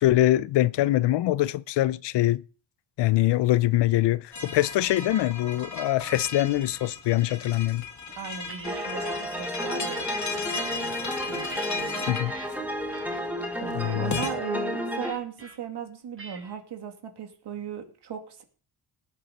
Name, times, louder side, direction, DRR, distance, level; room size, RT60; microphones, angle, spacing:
voice 1, 0.0-2.4 3.0-7.8 12.1-12.3 13.8-14.2, left 15 dB, 80° left, 0.6 m, -23 dB
sound 1, 4.3-14.3, left 4 dB, 40° left, 2.3 m, -36 dB
sound 2, 8.1-9.3 9.8-10.3 10.9-12.5 12.9-13.3 13.6-14.0 15.0-15.5 16.2-16.6, right 2 dB, 30° right, 4.4 m, -46 dB
voice 2, 8.2-10.1 10.7-10.9 11.3-12.1 13.6-18.4, right 7 dB, 70° right, 2.6 m, -37 dB
sound 3, 8.6-15.1, equal, 5° right, 2.6 m, -32 dB
19.0 x 7.5 x 4.1 m
cardioid pair, 80°, 41 cm